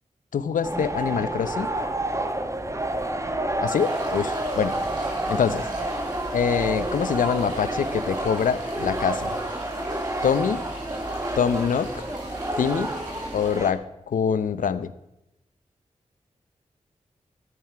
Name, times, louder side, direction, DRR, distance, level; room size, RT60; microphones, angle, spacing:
voice 1, 0.3-1.7 3.6-4.7 5.3-5.6 6.3-9.4 10.2-10.6 11.4-12.0 12.6-12.9 13.3-14.9, left 7 dB, 85° left, 14 dB, 0.7 m, -24 dB
sound 1, 0.6-13.7, right 1 dB, 20° right, 1.4 m, -29 dB
sound 2, 3.7-13.7, right 1 dB, 80° right, 6.1 m, -43 dB
14.0 x 9.1 x 5.8 m, 0.87 s
cardioid pair, 50°, 13 cm